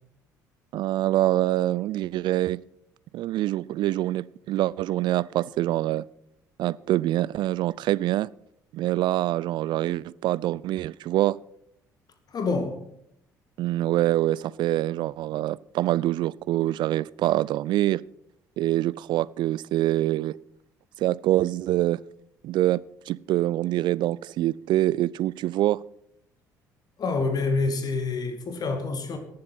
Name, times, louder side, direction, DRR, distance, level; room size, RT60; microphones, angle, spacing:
voice 1, 0.7-2.6 3.1-6.0 6.6-8.3 8.7-11.4 13.6-18.0 18.6-20.4 21.0-22.0 22.4-25.8, right 14 dB, 55° right, 0.4 m, -25 dB
voice 2, 12.3-12.8 27.0-29.2, left 3 dB, 45° left, 2.0 m, -27 dB
17.5 x 7.7 x 5.6 m
figure-of-eight pair, 50°, 10 cm